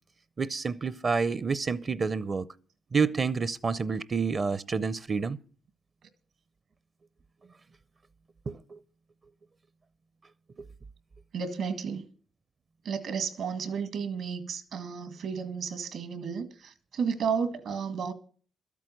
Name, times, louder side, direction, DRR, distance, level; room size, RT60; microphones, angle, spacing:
voice 1, 0.4-2.5 2.9-5.4 8.5-8.8 10.6-10.7, right 5 dB, 35° right, 0.6 m, -29 dB
voice 2, 11.3-12.1 12.8-18.1, right 6 dB, 75° right, 1.8 m, -32 dB
12.5 x 8.4 x 7.8 m
cardioid pair, 90°, 0 cm